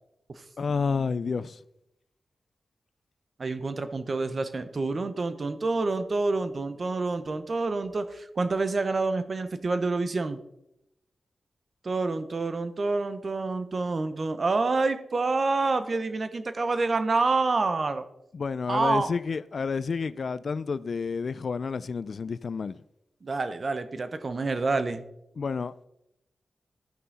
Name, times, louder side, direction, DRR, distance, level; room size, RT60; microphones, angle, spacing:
voice 1, 0.6-1.6 18.3-22.8 25.4-25.9, left 5 dB, 70° left, 0.4 m, -30 dB
voice 2, 3.4-10.4 11.8-18.0 18.7-19.1 23.2-25.0, right 3 dB, 55° right, 1.0 m, -27 dB
13.5 x 5.6 x 4.1 m
cardioid pair, 45°, 0 cm